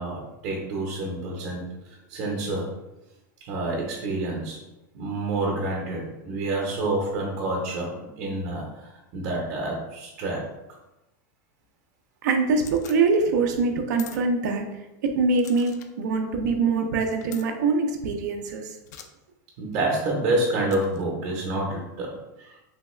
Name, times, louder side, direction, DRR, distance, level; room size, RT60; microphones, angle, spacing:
voice 1, 0.0-1.7 2.1-2.8 3.4-4.6 4.9-10.5 19.6-22.6, right 2 dB, 45° right, -2 dB, 0.8 m, -28 dB
voice 2, 12.2-18.8, right 4 dB, 75° right, 4 dB, 0.5 m, -24 dB
sound 1, 12.6-13.0 13.9-14.2 15.4-15.9 17.2-17.5 18.9-19.1 20.7-21.0, left 9 dB, 70° left, 0.4 m, -43 dB
3.4 x 2.3 x 3.1 m, 0.98 s
supercardioid pair, 155°, 10 cm